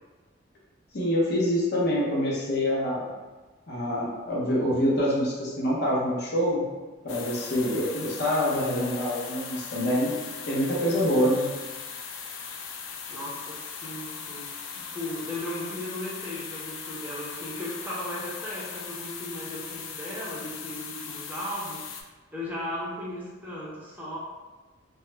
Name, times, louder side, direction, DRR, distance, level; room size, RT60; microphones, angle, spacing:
voice 1, 0.9-3.1 3.7-6.7 7.0-10.1 10.5-11.5, equal, 55° left, -5 dB, 0.7 m, -26 dB
sound 1, 7.1-22.0, left 6 dB, 80° left, 0.3 m, -39 dB
voice 2, 13.1-14.5 14.7-21.8 22.3-24.2, left 1 dB, 10° right, -6 dB, 0.5 m, -36 dB
2.3 x 2.1 x 3.1 m, 1.3 s
head